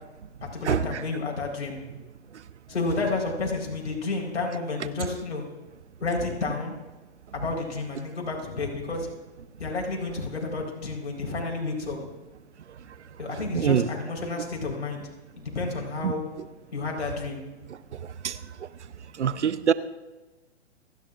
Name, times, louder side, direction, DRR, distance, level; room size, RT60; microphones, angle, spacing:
voice 1, 0.5-1.7 2.7-5.4 6.0-6.8 7.3-9.1 9.6-12.1 13.2-15.0 15.4-16.2 16.7-17.4, left 3 dB, 80° left, 4.6 m, -30 dB
voice 2, 13.5-13.9 16.0-16.1 18.2-18.3 19.2-19.7, right 8 dB, 80° right, 0.9 m, -23 dB
28.0 x 10.5 x 2.6 m
hypercardioid pair, 130°, 34 cm